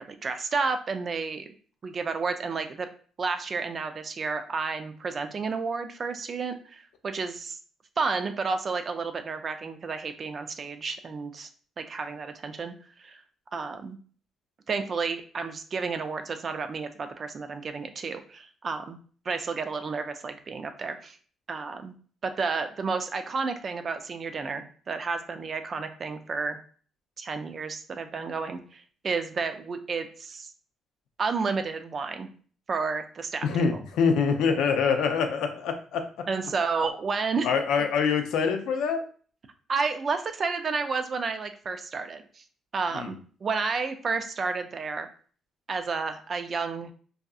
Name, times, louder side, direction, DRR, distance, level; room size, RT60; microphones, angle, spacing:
voice 1, 0.0-1.5 1.8-2.9 3.2-7.6 8.0-11.5 11.8-12.7 13.0-13.2 13.5-14.0 14.7-19.0 19.3-21.2 21.5-21.9 22.2-26.6 27.2-30.5 31.2-32.3 32.7-33.7 36.3-37.5 37.8-37.9 39.7-42.4 42.7-45.1 45.7-46.9, right 4 dB, 45° right, 8 dB, 0.3 m, -31 dB
voice 2, 33.4-36.3 37.4-39.0 42.9-43.2, left 6 dB, 85° left, 6 dB, 0.4 m, -25 dB
2.7 x 2.4 x 2.3 m, 0.43 s
cardioid pair, 90°, 0 cm